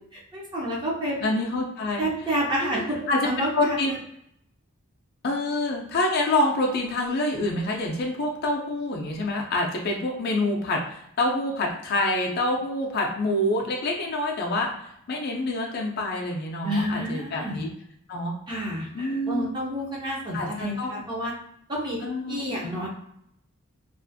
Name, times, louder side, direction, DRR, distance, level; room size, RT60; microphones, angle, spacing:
voice 1, 0.1-1.2 2.0-4.0 16.6-17.6 18.5-21.3 21.7-22.0 22.3-22.9, equal, 20° right, -4 dB, 0.5 m, -29 dB
voice 2, 1.2-2.0 2.6-3.9 5.2-17.7 18.1-18.3 18.9-19.5 20.3-21.1 22.0-22.7, left 2 dB, 50° left, -1 dB, 0.4 m, -27 dB
2.4 x 2.4 x 2.5 m, 0.75 s
head